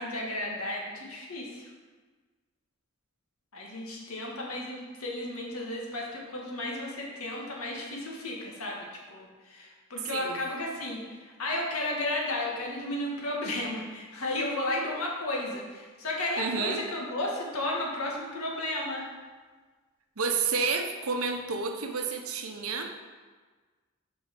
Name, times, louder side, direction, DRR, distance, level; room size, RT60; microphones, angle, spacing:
voice 1, 0.0-1.7 3.5-19.1, left 1 dB, 85° left, -2 dB, 1.8 m, -33 dB
voice 2, 10.1-10.4 16.4-16.8 20.2-22.9, right 4 dB, 85° right, 4 dB, 0.9 m, -30 dB
6.4 x 5.4 x 5.3 m, 1.4 s
head